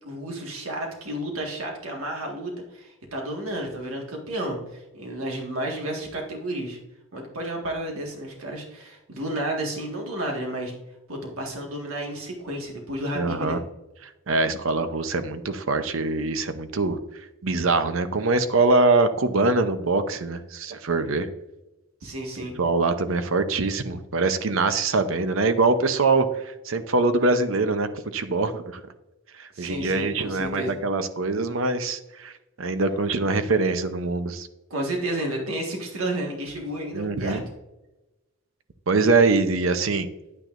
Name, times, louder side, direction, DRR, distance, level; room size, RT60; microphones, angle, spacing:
voice 1, 0.0-6.8 7.1-10.8 11.1-13.6 22.0-22.5 29.5-30.8 34.7-37.4, right 1 dB, 90° right, 1 dB, 1.7 m, -31 dB
voice 2, 13.1-13.6 14.0-21.3 22.4-28.8 29.3-32.3 32.6-34.5 36.9-37.4 38.9-40.1, right 3 dB, 70° right, 10 dB, 0.7 m, -23 dB
9.9 x 9.1 x 2.6 m, 0.98 s
head